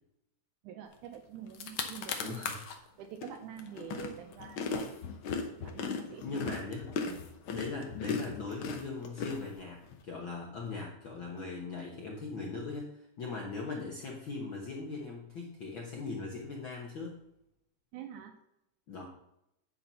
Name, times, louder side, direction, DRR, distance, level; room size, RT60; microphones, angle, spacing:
voice 1, 0.6-2.4 3.0-4.6 5.6-6.4 7.0-7.2 17.9-18.4, right 9 dB, 80° right, 5 dB, 2.1 m, -46 dB
sound 1, 1.1-1.2 1.5-2.8 3.2-10.0, left 5 dB, 85° left, 1.1 m, -37 dB
voice 2, 2.2-2.6 6.2-6.9 7.5-17.2 18.9-19.1, left 3 dB, 55° left, -2 dB, 1.4 m, -40 dB
10.0 x 4.3 x 5.5 m, 0.82 s
omnidirectional pair, 3.7 m